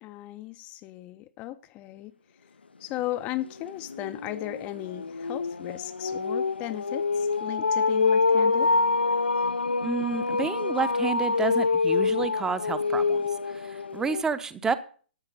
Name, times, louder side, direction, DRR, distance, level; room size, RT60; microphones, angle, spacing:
voice 1, 0.0-2.1 2.8-8.7, left 15 dB, 25° left, 0.5 m, -36 dB
sound 1, 3.0-3.1 3.4-14.2, left 4 dB, 80° left, 0.5 m, -26 dB
voice 2, 9.8-13.2 13.5-14.7, right 5 dB, 10° right, 0.7 m, -30 dB
12.5 x 8.1 x 5.4 m
figure-of-eight pair, 125°, 6 cm